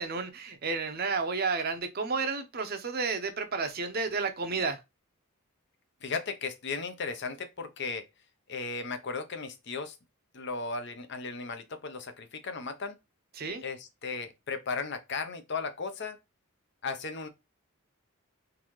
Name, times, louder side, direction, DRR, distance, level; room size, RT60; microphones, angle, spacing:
voice 1, 0.0-4.8 13.4-13.6, right 4 dB, 45° right, 0.6 m, -31 dB
voice 2, 6.0-8.0 8.5-10.0 10.3-13.0 13.6-16.2 16.8-17.3, left 4 dB, 55° left, 0.7 m, -36 dB
3.9 x 2.7 x 3.0 m
head